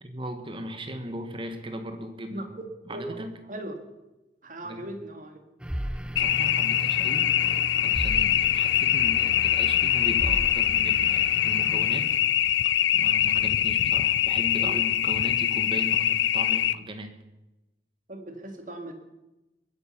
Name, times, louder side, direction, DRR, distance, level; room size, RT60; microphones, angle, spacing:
voice 1, 0.0-2.5 2.9-3.4 4.6-4.9 6.2-12.2 12.9-17.1, equal, 30° right, 7 dB, 1.6 m, -37 dB
voice 2, 4.4-5.4 14.6-14.8 18.1-18.9, right 1 dB, 45° right, 4 dB, 2.2 m, -38 dB
sound 1, 5.6-12.3, equal, 5° right, 0.7 m, -36 dB
sound 2, 6.2-16.7, left 11 dB, 85° left, 0.5 m, -23 dB
22.0 x 9.8 x 5.8 m, 1.0 s
head